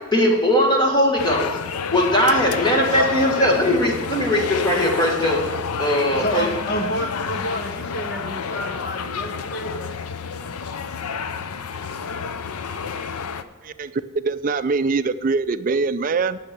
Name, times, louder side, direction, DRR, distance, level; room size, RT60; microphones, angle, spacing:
voice 1, 0.1-1.5 1.9-5.5 5.8-6.4, equal, 20° left, 0 dB, 1.7 m, -19 dB
sound 1, 1.2-13.4, left 6 dB, 85° left, 0.5 m, -29 dB
voice 2, 6.2-9.8, equal, 50° left, 3 dB, 1.4 m, -29 dB
voice 3, 13.6-16.4, right 4 dB, 40° right, 12 dB, 0.4 m, -23 dB
10.5 x 5.7 x 6.8 m, 1.4 s
head